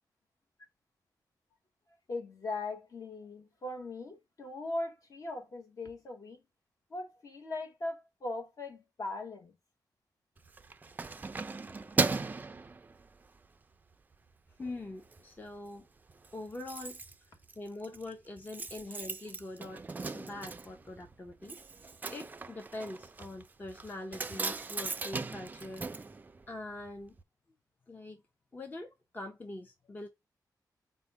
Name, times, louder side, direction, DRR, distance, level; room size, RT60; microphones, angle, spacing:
voice 1, 2.1-6.4 6.9-9.5, left 2 dB, 55° left, 1.1 m, -39 dB
Keys jangling, 10.4-13.5 13.9-14.1 14.5-15.2 15.5-15.6 15.8-15.9 16.1-26.9 27.2-27.3, right 3 dB, 25° right, 0.3 m, -38 dB
voice 2, 14.6-15.9 16.3-17.0 17.6-19.8 20.1-25.8 26.5-27.1 27.9-28.2 28.5-30.1, left 2 dB, 25° left, 0.6 m, -43 dB
4.0 x 2.2 x 4.5 m
wide cardioid pair, 120°, 7 cm